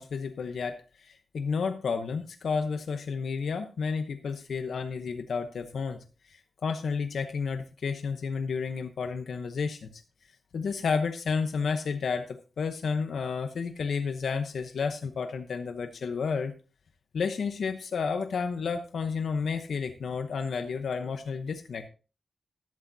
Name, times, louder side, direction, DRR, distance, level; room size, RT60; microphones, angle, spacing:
voice 1, 0.0-10.0 10.5-16.5 17.1-21.9, left 5 dB, 80° left, 7 dB, 0.9 m, -31 dB
13.5 x 12.0 x 2.7 m, 0.35 s
wide cardioid pair, 165°, 0 cm